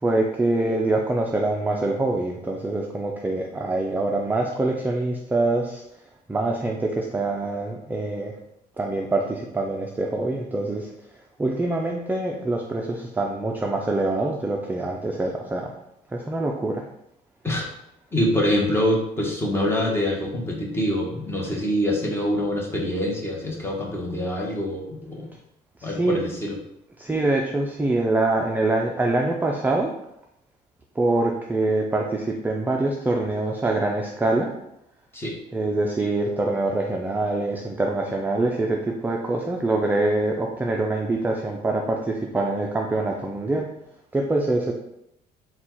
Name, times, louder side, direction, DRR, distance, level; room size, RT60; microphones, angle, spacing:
voice 1, 0.0-5.8 6.3-8.3 8.8-10.9 11.4-15.7 16.1-16.9 25.8-26.2 27.0-29.9 31.0-34.5 35.5-43.7 44.1-44.7, right 2 dB, 10° right, 0 dB, 0.4 m, -24 dB
voice 2, 18.1-25.3 25.8-26.6 35.1-35.4, left 1 dB, 15° left, -2 dB, 1.0 m, -25 dB
4.1 x 2.3 x 4.4 m, 0.80 s
cardioid pair, 110°, 17 cm